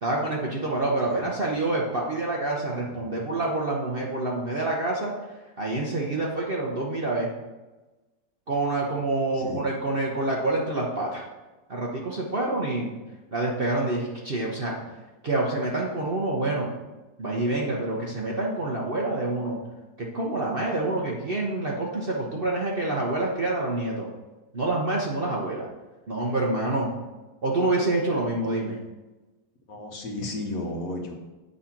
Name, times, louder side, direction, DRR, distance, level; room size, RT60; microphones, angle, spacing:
voice 1, 0.0-5.1 5.6-7.3 8.5-11.3 11.7-12.9 13.3-14.8 15.2-16.7 17.2-19.6 20.0-24.1 24.5-25.7 26.1-26.9 27.4-28.8, right 2 dB, 40° right, -2 dB, 0.9 m, -27 dB
voice 2, 9.3-9.7 29.7-31.1, left 2 dB, 55° left, 2 dB, 1.3 m, -33 dB
7.8 x 4.2 x 5.8 m, 1.1 s
omnidirectional pair, 1.9 m